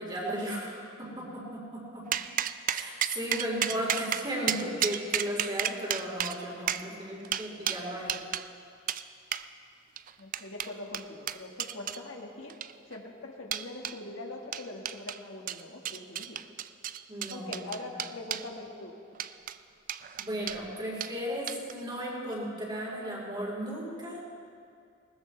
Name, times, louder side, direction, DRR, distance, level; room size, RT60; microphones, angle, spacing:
voice 1, 0.0-2.0 2.7-8.1 17.1-17.6 17.9-18.0 20.2-24.2, equal, 25° right, -4 dB, 4.0 m, -35 dB
sound 1, 2.1-8.5 8.9-9.0 9.3-9.5 10.0-12.0 12.5-13.0 13.5-14.0 14.5-15.2 15.5-18.5 19.1-19.6 19.9-20.6 21.0-21.1 21.5-21.8, right 10 dB, 40° right, 0.4 m, -33 dB
voice 2, 10.2-12.6 12.9-16.4 17.3-18.9, left 2 dB, 75° left, 1 dB, 1.8 m, -42 dB
20.5 x 18.5 x 3.3 m, 2.4 s
head